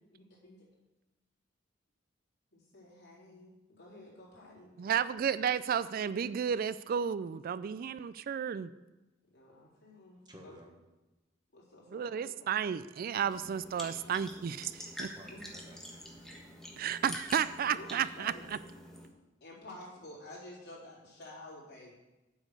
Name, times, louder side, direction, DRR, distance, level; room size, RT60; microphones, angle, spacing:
voice 1, 0.1-0.7 2.5-5.0 7.8-7.9 9.3-10.6 11.5-12.3 14.0-14.1 15.3-15.4 17.7-18.7 19.4-21.9, left 1 dB, 60° left, -6 dB, 3.9 m, -51 dB
voice 2, 4.8-8.7 11.9-15.1 16.8-18.6, right 8 dB, 50° right, 15 dB, 0.3 m, -32 dB
voice 3, 10.2-10.7 15.0-16.3, equal, 25° right, 1 dB, 1.5 m, -55 dB
sound 1, 13.2-19.1, equal, 5° left, 1.4 m, -46 dB
8.2 x 6.3 x 8.2 m, 1.1 s
head